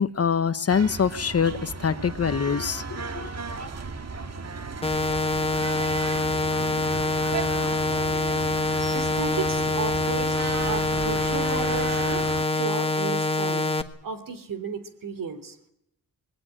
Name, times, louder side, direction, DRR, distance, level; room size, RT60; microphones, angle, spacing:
voice 1, 0.0-2.8 3.1-3.3, left 6 dB, 45° left, 13 dB, 1.0 m, -24 dB
sound 1, 0.7-12.4, right 4 dB, 45° right, 1.8 m, -35 dB
sound 2, 4.8-13.8, left 2 dB, 15° left, 1.5 m, -25 dB
voice 2, 8.9-10.4 10.7-12.2 12.5-13.7 14.0-15.6, right 5 dB, 70° right, 10 dB, 3.4 m, -33 dB
21.0 x 17.5 x 9.9 m, 0.77 s
wide cardioid pair, 115°, 35 cm